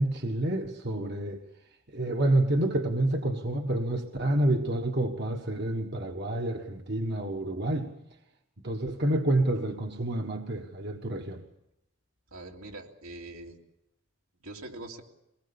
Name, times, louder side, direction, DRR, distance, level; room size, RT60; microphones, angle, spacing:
voice 1, 0.0-1.4 1.9-7.9 8.6-11.4, right 1 dB, 50° right, 1.5 m, -28 dB
voice 2, 12.3-13.6 14.4-15.0, right 2 dB, 85° right, 3.2 m, -43 dB
23.5 x 20.5 x 7.1 m
head